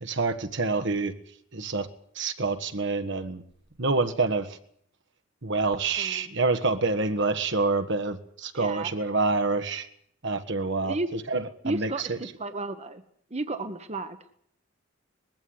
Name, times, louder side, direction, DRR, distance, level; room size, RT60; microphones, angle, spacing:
voice 1, 0.0-1.1 1.5-1.9 2.2-3.4 3.8-4.5 5.4-9.9 10.2-12.2, right 3 dB, 65° right, 8 dB, 1.7 m, -27 dB
voice 2, 6.0-6.3 8.5-8.9 10.8-11.1 11.6-13.0 13.3-14.2, right 2 dB, 35° right, 9 dB, 1.3 m, -33 dB
20.5 x 15.5 x 9.6 m, 0.66 s
head